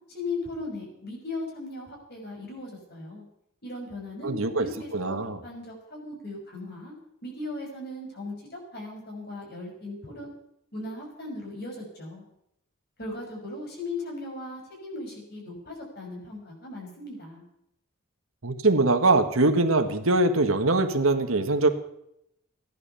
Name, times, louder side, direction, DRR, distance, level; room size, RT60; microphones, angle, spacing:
voice 1, 0.1-3.2 3.6-6.9 7.2-10.3 10.7-12.2 13.0-17.4, left 2 dB, 50° left, 0 dB, 6.0 m, -38 dB
voice 2, 4.2-4.7 4.9-5.4 18.4-21.7, right 2 dB, 80° right, 7 dB, 1.6 m, -22 dB
16.0 x 11.0 x 6.9 m, 0.78 s
head